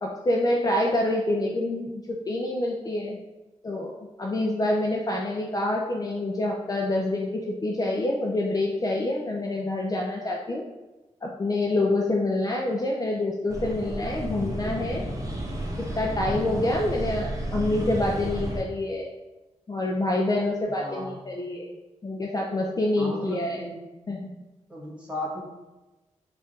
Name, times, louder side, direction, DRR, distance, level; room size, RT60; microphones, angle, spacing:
voice 1, 0.0-3.2 3.6-10.6 11.2-15.0 16.0-19.1 19.7-21.7 22.0-23.6 24.1-24.4, left 1 dB, 30° left, -1 dB, 0.4 m, -27 dB
sound 1, 13.5-18.6, right 1 dB, 25° right, 0.8 m, -32 dB
voice 2, 20.8-21.1 23.0-23.9 24.7-25.4, equal, 10° right, -5 dB, 1.3 m, -35 dB
3.5 x 2.5 x 4.1 m, 1.1 s
cardioid pair, 80°, 13 cm